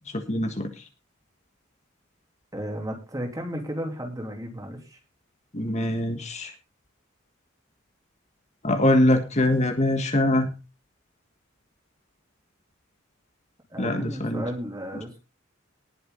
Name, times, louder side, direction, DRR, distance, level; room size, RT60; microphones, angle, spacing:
voice 1, 0.1-0.7 5.5-6.5 8.6-10.5 13.8-14.4, left 1 dB, 35° left, 6 dB, 1.6 m, -23 dB
voice 2, 2.5-5.0 13.7-15.2, equal, 15° right, 2 dB, 3.2 m, -34 dB
19.0 x 6.9 x 4.0 m, 0.29 s
head